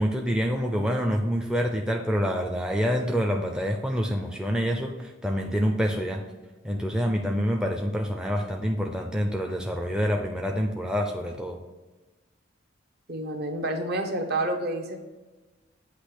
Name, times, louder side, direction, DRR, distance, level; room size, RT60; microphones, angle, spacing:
voice 1, 0.0-6.2 6.6-11.6, equal, 5° right, 1 dB, 0.5 m, -27 dB
voice 2, 13.1-15.1, right 1 dB, 50° right, 4 dB, 0.8 m, -29 dB
8.3 x 2.9 x 6.0 m, 1.2 s
head